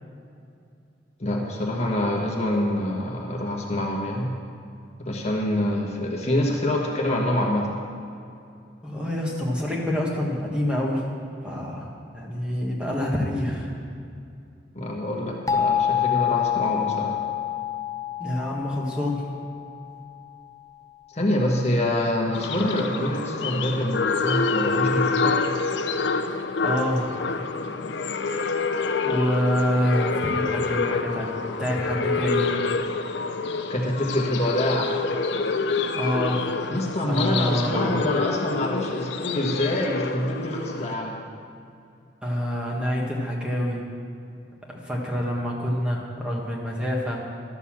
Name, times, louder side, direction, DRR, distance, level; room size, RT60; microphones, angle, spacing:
voice 1, 1.2-4.3 5.0-7.8 14.7-17.2 21.1-25.4 33.7-34.9 36.7-41.2, left 1 dB, 35° left, -1 dB, 1.3 m, -26 dB
voice 2, 8.8-11.0 11.4-13.7 18.2-19.2 26.3-27.1 29.1-32.5 36.0-36.6 37.1-38.0 42.2-43.8 44.7-47.2, equal, 5° right, -3 dB, 1.5 m, -27 dB
sound 1, 15.5-20.2, left 9 dB, 20° left, 0.5 m, -27 dB
sound 2, 22.3-40.9, left 4 dB, 75° left, 0.6 m, -27 dB
12.5 x 6.9 x 7.3 m, 2.5 s
head